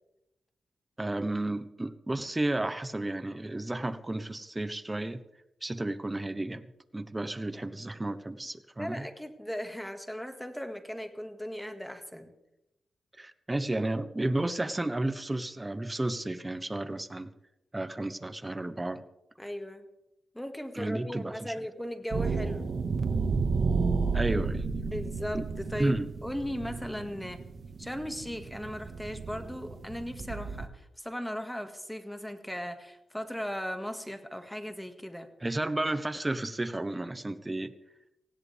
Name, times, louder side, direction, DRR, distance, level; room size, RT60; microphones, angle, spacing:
voice 1, 1.0-5.2 5.6-6.6 6.9-9.1 13.2-17.3 17.7-19.0 20.7-21.5 24.1-24.9 25.3-25.4 25.8-26.1 35.4-37.7, right 2 dB, 20° right, 12 dB, 1.1 m, -32 dB
voice 2, 8.8-12.3 19.4-19.9 20.3-22.7 24.9-27.4 27.8-35.3, equal, 5° left, 7 dB, 1.9 m, -37 dB
sound 1, 22.1-30.7, right 4 dB, 60° right, 1.6 m, -32 dB
19.0 x 16.5 x 3.5 m, 0.88 s
cardioid pair, 75°, 0 cm